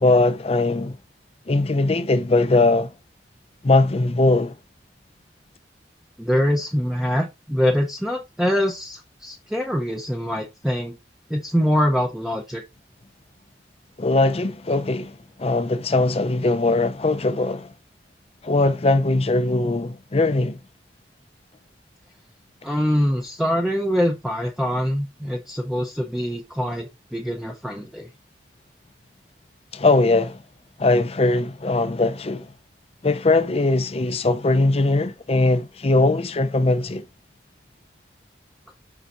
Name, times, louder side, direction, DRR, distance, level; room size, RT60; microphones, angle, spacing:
voice 1, 0.0-1.0 1.5-2.9 3.6-4.5 14.0-17.7 18.4-20.6 29.7-30.4 30.8-32.5 33.0-37.0, left 2 dB, 35° left, 0.6 m, -20 dB
voice 2, 6.2-11.0 11.3-12.6 22.6-28.1, equal, ahead, 0.7 m, -24 dB
7.1 x 5.7 x 2.6 m
head